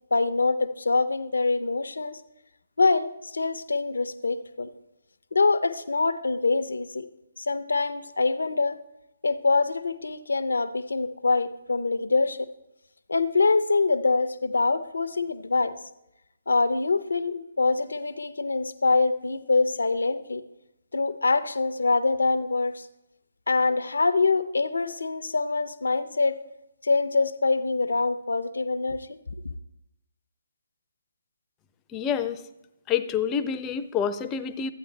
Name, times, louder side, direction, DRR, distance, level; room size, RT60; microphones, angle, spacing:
voice 1, 0.1-2.2 2.8-4.7 5.3-7.1 7.4-8.8 9.2-12.5 13.1-15.7 16.5-20.4 20.9-22.8 23.5-26.4 26.8-29.2, left 3 dB, 80° left, 12 dB, 0.6 m, -24 dB
voice 2, 31.9-32.4 32.9-34.7, left 8 dB, 20° left, 10 dB, 0.5 m, -27 dB
13.5 x 8.9 x 3.3 m, 0.89 s
figure-of-eight pair, 140°, 0 cm